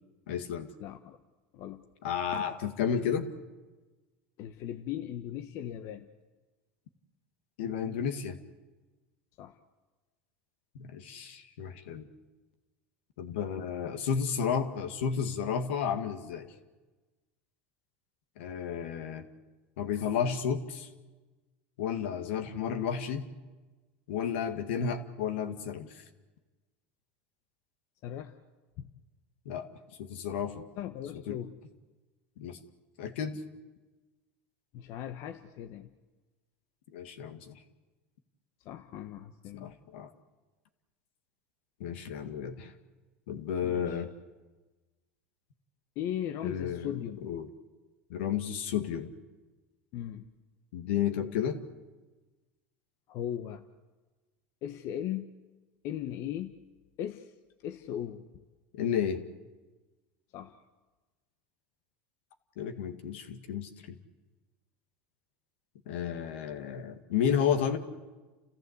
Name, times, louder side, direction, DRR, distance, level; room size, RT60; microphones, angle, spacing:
voice 1, 0.3-0.7 2.0-3.3 7.6-8.4 10.7-12.1 13.2-16.5 18.4-19.3 19.8-20.9 21.8-23.3 24.1-26.0 29.5-29.7 30.0-30.6 31.1-31.4 32.4-32.6 33.0-33.4 36.9-37.5 39.5-40.1 41.8-42.7 43.3-44.1 46.4-47.5 48.1-49.1 50.7-51.6 58.8-59.2 62.6-64.0 65.9-67.8, left 7 dB, 80° left, 7 dB, 2.0 m, -32 dB
voice 2, 0.8-1.2 1.5-1.8 4.4-6.1 9.4-9.6 28.0-28.4 28.8-28.9 30.8-31.5 34.7-35.9 38.6-39.8 43.6-44.0 46.0-47.2 49.9-50.2 53.1-53.6 54.6-55.3 55.8-56.6 57.0-57.3 57.6-58.2 60.3-60.6, left 11 dB, 55° left, 7 dB, 1.1 m, -38 dB
30.0 x 15.0 x 8.1 m, 1.3 s
supercardioid pair, 110°, 6 cm